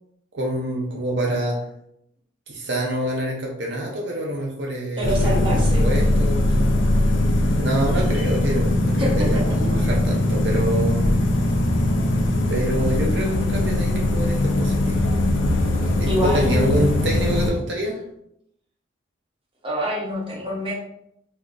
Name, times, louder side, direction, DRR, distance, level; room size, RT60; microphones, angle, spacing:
voice 1, 0.3-1.6 2.5-5.5 5.8-6.7 7.5-11.1 12.5-15.0 15.8-18.0, right 1 dB, 65° right, -1 dB, 0.5 m, -26 dB
sound 1, 5.0-17.5, left 1 dB, 90° left, 0.5 m, -20 dB
voice 2, 5.0-5.9 9.0-9.7 16.0-16.9 19.6-20.7, equal, 25° right, -4 dB, 0.8 m, -26 dB
3.7 x 2.6 x 2.3 m, 0.75 s
head